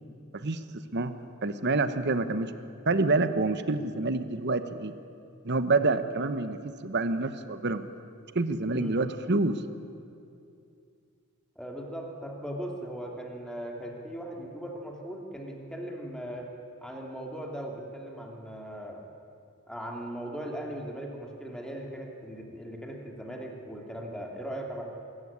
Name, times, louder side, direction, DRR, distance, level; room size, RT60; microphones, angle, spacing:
voice 1, 1.4-2.5 2.9-4.9 5.4-7.9 8.3-9.6, right 3 dB, 55° right, 11 dB, 1.1 m, -27 dB
voice 2, 11.6-16.5 16.8-19.0 19.7-24.8, equal, 5° left, 0 dB, 2.7 m, -38 dB
24.0 x 14.5 x 9.7 m, 2.5 s
head